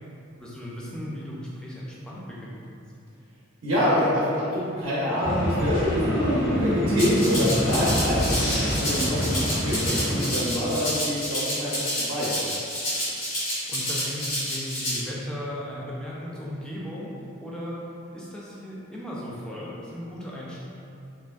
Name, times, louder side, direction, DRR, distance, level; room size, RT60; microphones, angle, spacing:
voice 1, 0.4-2.6 13.7-17.1 17.4-17.8 18.1-20.7, equal, 5° left, -7 dB, 0.3 m, -36 dB
voice 2, 3.6-12.3, left 1 dB, 75° right, -9 dB, 0.5 m, -26 dB
sound 1, 5.2-10.3, equal, 60° left, 0.7 m, -25 dB
Rattle (instrument), 7.0-15.0, equal, 80° left, 1.1 m, -29 dB
2.9 x 2.5 x 2.3 m, 2.6 s
head